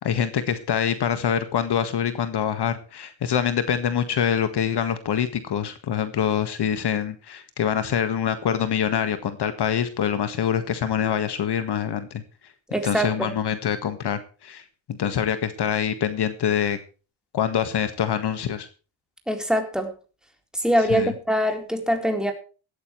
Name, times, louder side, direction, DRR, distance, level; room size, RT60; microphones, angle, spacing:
voice 1, 0.0-12.2 12.8-16.8 17.3-18.7 20.9-21.1, left 8 dB, 55° left, 10 dB, 1.7 m, -25 dB
voice 2, 12.7-13.3 19.3-19.9 20.5-22.3, equal, ahead, 4 dB, 4.1 m, -23 dB
17.0 x 14.0 x 3.2 m, 0.35 s
cardioid pair, 115°, 48 cm